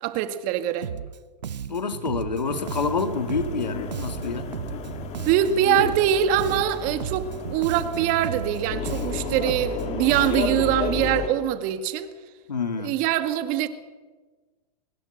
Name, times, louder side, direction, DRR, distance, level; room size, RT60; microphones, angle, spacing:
voice 1, 0.0-0.9 5.3-12.1 12.8-13.7, right 10 dB, 40° right, 2.1 m, -23 dB
Bass guitar, 0.8-1.2 1.4-6.1 6.4-10.7, right 8 dB, 80° right, 1.0 m, -35 dB
voice 2, 1.7-4.5 12.5-12.9, left 5 dB, 90° left, 2.6 m, -27 dB
sound 1, 2.4-11.3, left 7 dB, 30° left, 3.1 m, -33 dB
24.0 x 21.0 x 6.8 m
hypercardioid pair, 115°, 21 cm